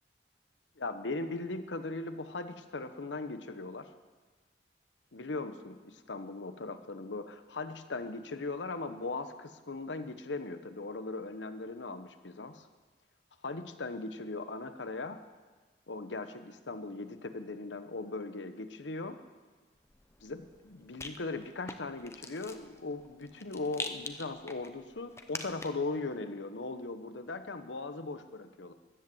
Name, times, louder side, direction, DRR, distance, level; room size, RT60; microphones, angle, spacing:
voice 1, 0.8-3.9 5.1-12.7 13.4-15.2 15.9-19.2 20.2-28.7, left 3 dB, 85° left, 10 dB, 1.0 m, -39 dB
Rattle, 19.8-25.9, left 3 dB, 15° left, 0.7 m, -45 dB
14.0 x 10.5 x 7.8 m, 1.3 s
head